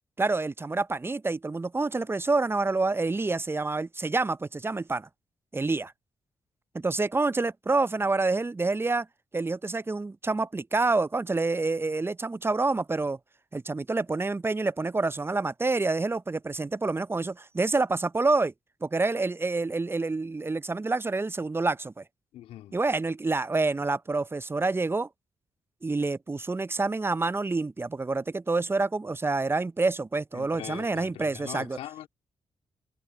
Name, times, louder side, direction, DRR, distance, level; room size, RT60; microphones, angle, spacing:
voice 1, 0.2-5.1 5.5-5.9 6.7-9.1 9.3-13.2 13.5-18.5 18.8-22.0 22.7-25.1 25.8-31.8, right 3 dB, 20° right, 0.5 m, -27 dB
voice 2, 22.3-22.8 30.3-32.1, left 12 dB, 85° left, 2.5 m, -41 dB
supercardioid pair, 50°, 10 cm